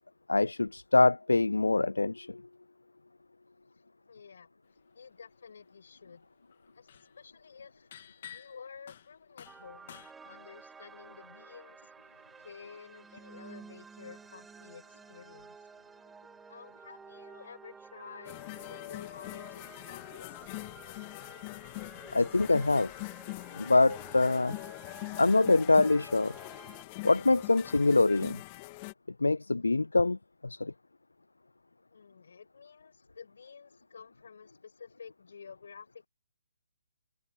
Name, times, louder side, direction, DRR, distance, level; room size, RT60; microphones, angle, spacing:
voice 1, 0.3-2.4 22.1-22.9 23.6-24.6 25.2-26.3 27.0-28.4 29.2-30.2 30.4-30.7, left 3 dB, 90° left, 0.3 m, -24 dB
voice 2, 4.1-4.5 4.9-6.3 6.7-15.6 16.5-20.5 31.9-36.1, left 6 dB, 65° left, 6.5 m, -51 dB
sound 1, 5.0-5.5 5.8-10.1, left 10 dB, 45° left, 2.6 m, -51 dB
sound 2, 9.4-26.8, right 5 dB, 10° right, 3.2 m, -53 dB
sound 3, 18.2-28.9, left 25 dB, 30° left, 2.4 m, -43 dB
figure-of-eight pair, 145°, 0 cm